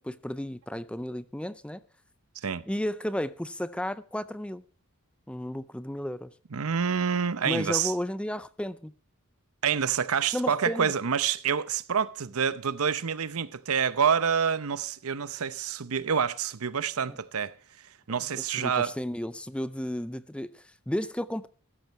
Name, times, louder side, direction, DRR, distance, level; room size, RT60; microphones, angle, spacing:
voice 1, 0.0-1.8 2.7-4.6 5.3-6.3 7.4-8.9 10.3-10.9 17.1-17.2 18.3-21.5, left 1 dB, 5° left, 0.5 m, -33 dB
voice 2, 6.5-7.9 9.6-17.5 18.1-18.9, right 7 dB, 75° right, 0.7 m, -27 dB
15.5 x 13.5 x 3.1 m
head